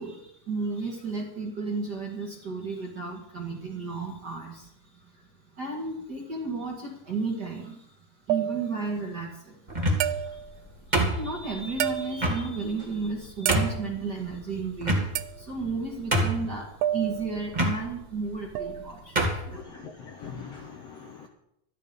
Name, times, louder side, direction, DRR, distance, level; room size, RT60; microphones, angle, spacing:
voice 1, 0.0-5.2 5.5-8.0 8.3-10.5 10.9-19.9, right 4 dB, 35° right, 0 dB, 2.2 m, -34 dB
sound 1, 8.3-8.9 10.0-10.6 11.8-12.4 13.5-14.0 15.2-15.4 16.8-17.5 18.5-18.9, right 12 dB, 80° right, 1.7 m, -30 dB
sound 2, 9.7-10.2 10.9-11.6 12.2-12.4 13.0-13.1 13.5-13.8 14.8-15.4 15.7-15.8 16.1-16.6 17.5-17.8 18.6-18.7 19.1-19.5, right 1 dB, 15° right, 1.6 m, -25 dB
voice 2, 19.5-21.3, left 6 dB, 60° left, 2 dB, 1.8 m, -42 dB
13.0 x 12.5 x 5.2 m, 0.78 s
omnidirectional pair, 4.0 m